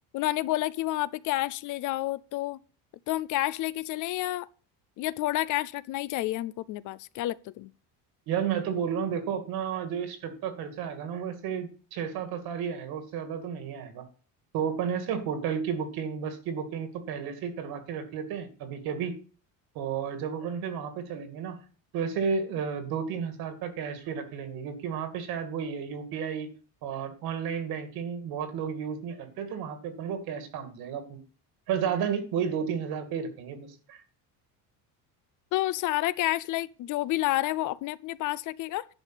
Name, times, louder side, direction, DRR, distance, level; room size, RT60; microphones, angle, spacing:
voice 1, 0.1-2.6 3.1-4.5 5.0-7.7 35.5-38.9, left 16 dB, 50° left, 0.5 m, -29 dB
voice 2, 8.3-14.1 14.5-19.2 19.7-21.6 21.9-26.5 26.8-31.2 31.7-34.0, right 7 dB, 65° right, 2.5 m, -32 dB
10.5 x 5.2 x 8.2 m
cardioid pair, 155°, 39 cm